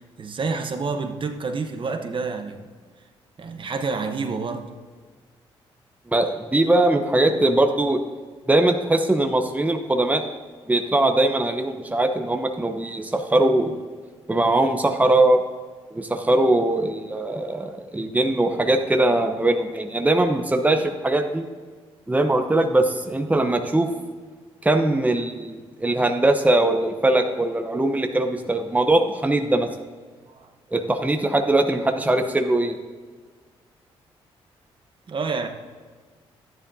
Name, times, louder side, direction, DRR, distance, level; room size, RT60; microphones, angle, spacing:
voice 1, 0.0-2.7 3.4-4.7 30.3-30.5 35.1-35.5, right 4 dB, 45° right, 1.0 m, -28 dB
voice 2, 6.1-8.0 8.5-10.3 10.7-13.7 14.3-15.4 15.9-21.4 22.1-23.9 24.6-29.7 30.7-32.8, right 2 dB, 15° right, 0.9 m, -21 dB
12.0 x 10.0 x 2.7 m
supercardioid pair, 55°, 11 cm